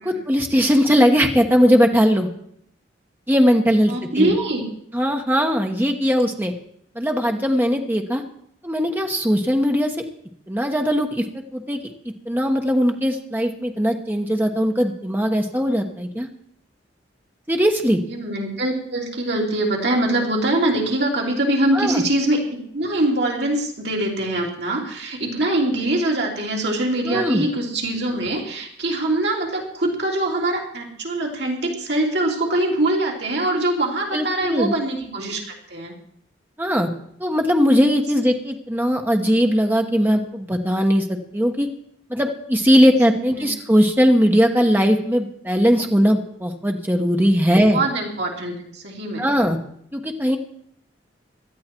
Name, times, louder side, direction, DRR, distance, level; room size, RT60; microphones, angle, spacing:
voice 1, 0.0-2.3 3.3-4.3 4.9-6.5 6.9-8.2 8.6-9.9 10.5-11.2 11.5-11.8 12.2-16.3 17.5-18.0 21.7-22.0 27.0-27.4 34.1-34.7 36.6-36.9 37.2-41.0 41.3-41.7 42.1-47.8 49.2-49.6 49.9-50.4, equal, 10° right, 3 dB, 1.2 m, -19 dB
voice 2, 3.9-4.6 18.1-35.9 43.3-43.5 47.7-49.3, right 1 dB, 60° right, -1 dB, 3.2 m, -23 dB
18.0 x 12.5 x 4.6 m, 0.68 s
head